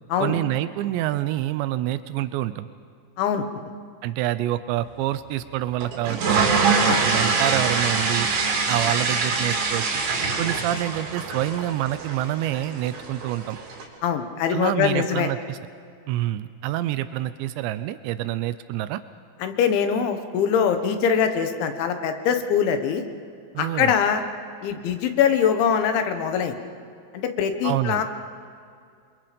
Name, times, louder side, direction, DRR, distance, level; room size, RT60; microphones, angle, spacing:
voice 1, 0.2-2.7 4.0-8.3 8.7-10.0 10.4-13.6 14.5-15.6 16.1-19.0 23.5-23.9 27.6-28.0, right 14 dB, 85° right, 12 dB, 2.5 m, -27 dB
sound 1, 5.8-13.8, right 4 dB, 65° right, 5.4 m, -24 dB
voice 2, 14.0-15.3 19.4-23.0 23.6-24.2 24.6-26.6 27.1-28.0, left 7 dB, 70° left, 7 dB, 3.5 m, -23 dB
28.0 x 25.0 x 5.2 m, 2.3 s
omnidirectional pair, 5.9 m